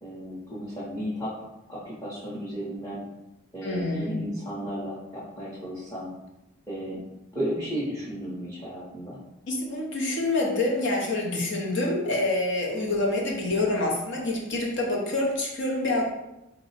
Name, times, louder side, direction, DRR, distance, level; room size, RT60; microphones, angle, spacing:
voice 1, 0.0-1.3 1.7-3.0 3.5-6.1 6.7-7.0 7.3-9.2, equal, 15° left, -10 dB, 0.9 m, -34 dB
voice 2, 3.6-4.2 9.5-16.1, left 2 dB, 55° left, -1 dB, 0.8 m, -27 dB
3.8 x 2.3 x 4.0 m, 0.92 s
head